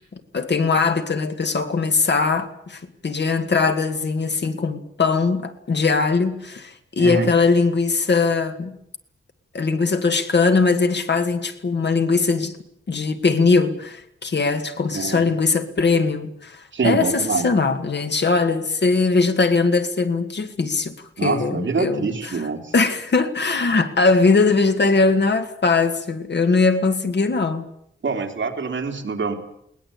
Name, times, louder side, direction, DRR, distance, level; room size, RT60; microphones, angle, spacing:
voice 1, 0.3-8.7 9.5-12.5 12.9-22.4 22.7-27.7, left 4 dB, 55° left, 1.9 m, -20 dB
voice 2, 7.0-7.3 14.9-15.2 16.7-17.5 21.2-22.7 28.0-29.3, right 4 dB, 65° right, 3.2 m, -25 dB
20.5 x 19.5 x 8.6 m
wide cardioid pair, 150°, 21 cm